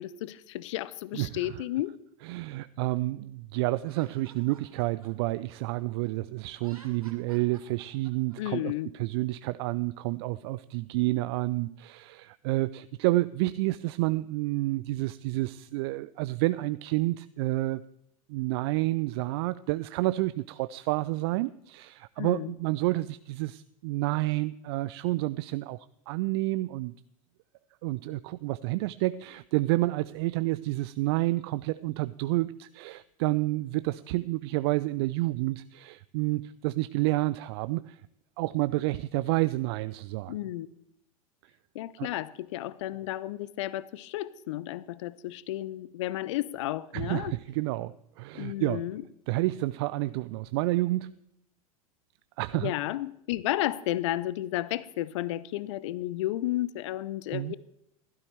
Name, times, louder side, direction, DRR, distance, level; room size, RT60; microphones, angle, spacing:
voice 1, 0.0-2.0 8.4-8.9 22.2-22.5 40.3-40.7 41.7-47.3 48.3-49.0 52.5-57.5, left 15 dB, 55° left, 19 dB, 0.5 m, -32 dB
voice 2, 1.1-1.6 2.2-17.8 18.3-26.9 27.8-38.0 38.4-40.4 42.0-42.1 46.9-48.8 49.3-51.1 52.4-52.7 57.3-57.5, right 19 dB, 45° right, 15 dB, 0.4 m, -29 dB
Laughter, 3.8-6.1 6.5-8.4, right 4 dB, 85° right, 2.8 m, -55 dB
15.5 x 12.5 x 3.3 m, 0.80 s
figure-of-eight pair, 90°, 18 cm